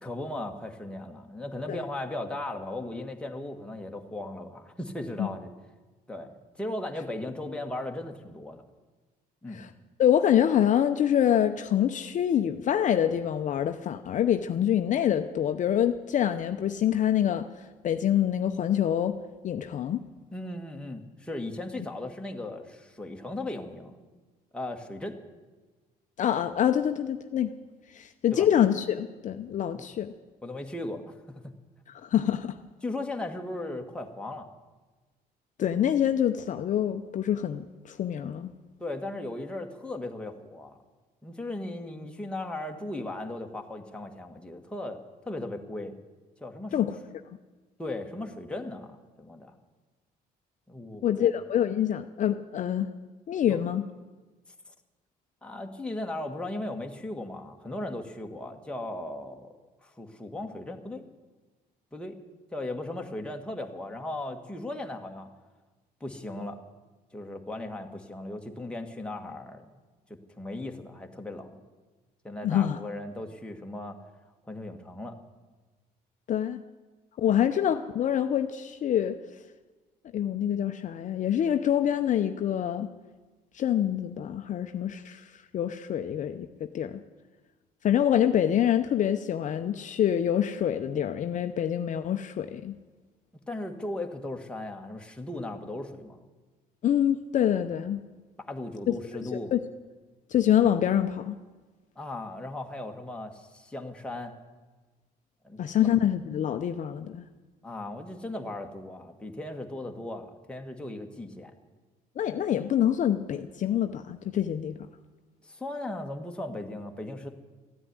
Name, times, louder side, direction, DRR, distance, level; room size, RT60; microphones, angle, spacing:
voice 1, 0.0-5.5 6.1-8.6 9.4-9.7 20.3-23.9 24.5-25.2 28.3-28.5 29.7-29.9 30.4-31.5 32.8-34.5 38.8-40.8 41.2-45.0 45.3-45.9 46.4-46.8 47.8-49.5 50.7-51.3 53.5-53.6 55.4-59.5 59.8-61.0 61.9-62.2 62.5-65.3 66.0-66.6 67.1-69.7 70.3-71.6 72.2-74.0 74.5-75.2 77.3-77.4 93.5-96.2 98.4-99.5 102.0-104.3 105.4-105.9 107.6-111.5 115.4-117.3, left 2 dB, 5° left, 2 dB, 1.7 m, -37 dB
voice 2, 10.0-17.5 17.8-19.2 19.4-20.0 26.2-27.5 27.9-30.1 31.9-32.5 35.6-38.5 46.7-46.9 51.0-52.9 53.3-53.8 72.4-72.8 76.3-76.6 77.2-79.2 80.1-82.9 83.5-85.2 85.5-87.0 87.8-92.7 96.8-98.0 98.9-99.0 99.3-99.6 100.3-101.3 105.6-107.2 112.2-114.8, left 10 dB, 50° left, 8 dB, 0.7 m, -26 dB
14.5 x 9.7 x 9.6 m, 1.3 s
cardioid pair, 110°, 17 cm